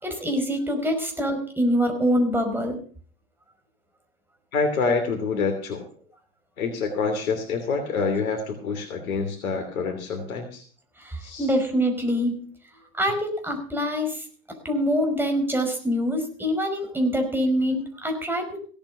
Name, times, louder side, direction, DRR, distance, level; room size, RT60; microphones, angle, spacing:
voice 1, 0.0-2.8 11.0-12.4 13.0-14.2 14.7-18.6, equal, 5° right, 3 dB, 5.2 m, -25 dB
voice 2, 4.5-5.8 6.6-10.6 11.2-11.5, left 4 dB, 80° left, 4 dB, 3.0 m, -27 dB
16.5 x 8.8 x 6.7 m, 0.43 s
hypercardioid pair, 90°, 42 cm